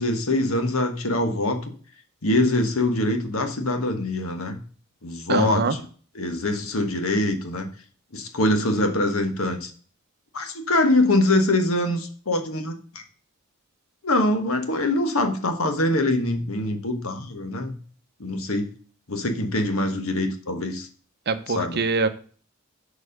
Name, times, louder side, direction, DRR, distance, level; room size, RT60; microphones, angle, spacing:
voice 1, 0.0-1.7 2.2-4.6 5.0-5.8 6.1-7.7 8.1-9.7 10.3-13.0 14.0-17.8 18.2-18.7 19.1-20.9 21.5-21.8, left 1 dB, 70° left, 6 dB, 1.4 m, -24 dB
voice 2, 5.3-5.7 21.3-22.1, right 4 dB, 50° right, 10 dB, 0.8 m, -23 dB
6.9 x 4.7 x 6.6 m, 0.43 s
head